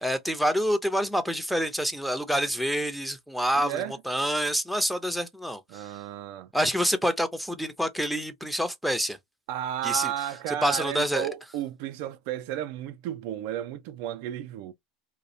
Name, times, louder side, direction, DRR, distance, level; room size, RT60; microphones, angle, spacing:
voice 1, 0.0-5.9 6.5-9.2 9.8-10.1 10.5-11.3, equal, ahead, 0.6 m, -27 dB
voice 2, 3.5-4.0 5.7-6.5 9.5-14.7, right 11 dB, 65° right, 0.3 m, -33 dB
2.3 x 2.0 x 2.7 m
hypercardioid pair, 95°, 0 cm